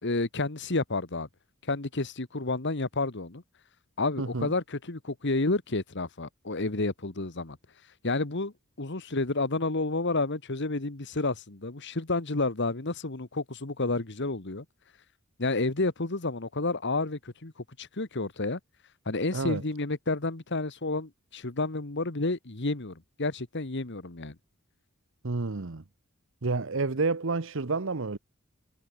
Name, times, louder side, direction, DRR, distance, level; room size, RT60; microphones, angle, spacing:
voice 1, 0.0-1.3 1.7-3.4 4.0-7.6 8.0-8.5 8.8-14.6 15.4-17.5 17.8-18.6 19.0-24.3, left 2 dB, 55° left, 1.6 m, -30 dB
voice 2, 4.2-4.5 19.3-19.6 25.2-25.8 26.4-28.2, right 3 dB, 60° right, 1.0 m, -29 dB
head